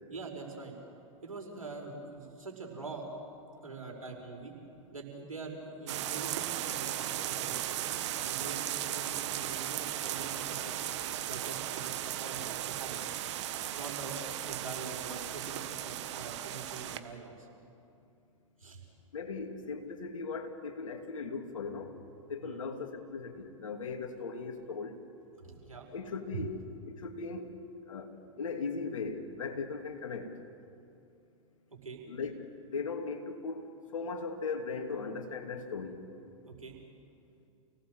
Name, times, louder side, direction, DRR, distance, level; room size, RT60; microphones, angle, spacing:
voice 1, 0.1-0.7 1.2-3.1 3.6-4.5 4.9-7.9 8.2-10.8 11.3-13.1 13.7-17.5 18.6-18.8 22.4-22.7 25.4-25.9 26.3-26.4 31.8-32.0 36.4-36.8, right 4 dB, 90° right, 1 dB, 5.4 m, -44 dB
sound 1, 5.9-17.0, right 12 dB, 60° right, 1.5 m, -36 dB
voice 2, 19.1-22.0 22.3-25.0 25.9-27.5 27.9-28.1 28.4-30.3 32.1-32.4 32.7-33.7 33.9-36.0, left 4 dB, 75° left, 4 dB, 2.9 m, -38 dB
29.0 x 18.5 x 8.0 m, 2.6 s
hypercardioid pair, 105°, 17 cm